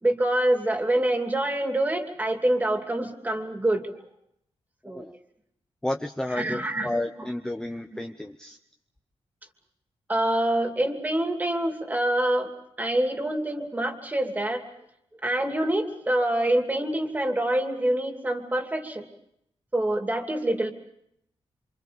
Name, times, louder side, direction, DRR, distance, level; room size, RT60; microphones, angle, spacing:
voice 1, 0.0-4.0 4.8-5.1 6.3-6.9 10.1-12.5 12.8-14.6 15.2-19.1 19.7-20.7, right 1 dB, 15° right, 4 dB, 2.7 m, -26 dB
voice 2, 5.8-8.6, left 1 dB, 5° left, 5 dB, 0.8 m, -32 dB
27.0 x 26.5 x 5.2 m, 0.76 s
wide cardioid pair, 150°, 10 cm